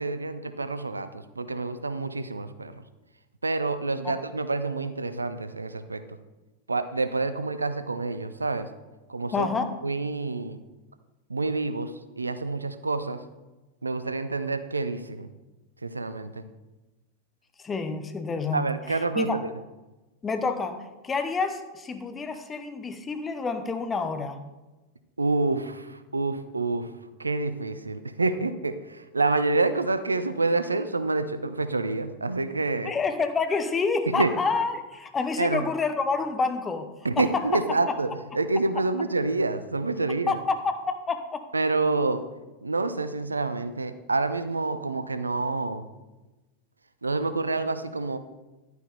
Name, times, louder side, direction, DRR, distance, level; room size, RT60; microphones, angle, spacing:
voice 1, 0.0-2.8 3.4-6.2 6.7-8.7 9.1-9.5 9.8-10.6 11.3-13.2 13.8-15.3 15.8-16.4 18.5-19.5 25.2-26.9 27.2-32.9 34.1-34.3 35.4-35.6 37.0-40.4 41.5-42.2 42.6-45.9 47.0-48.2, right 3 dB, 80° right, 11 dB, 0.5 m, -28 dB
voice 2, 9.3-9.6 17.6-19.4 20.2-24.4 32.8-36.9 37.2-37.9 40.3-41.4, left 4 dB, 20° left, 8 dB, 0.9 m, -28 dB
11.0 x 9.3 x 3.4 m, 1.1 s
figure-of-eight pair, 90°, 0 cm